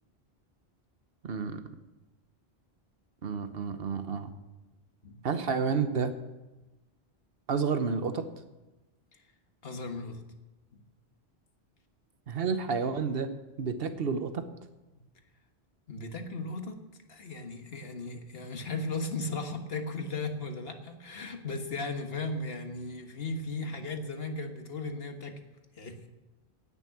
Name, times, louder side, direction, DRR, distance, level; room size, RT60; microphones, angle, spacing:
voice 1, 1.2-1.6 3.2-4.3 5.2-6.1 7.5-8.3 12.3-13.3 13.6-14.4, right 5 dB, 65° right, 9 dB, 1.2 m, -30 dB
voice 2, 9.6-10.2 10.7-10.8 15.9-16.8 17.1-25.4 25.7-26.1, left 3 dB, 70° left, 5 dB, 1.6 m, -36 dB
9.9 x 9.4 x 8.5 m, 1.1 s
omnidirectional pair, 1.0 m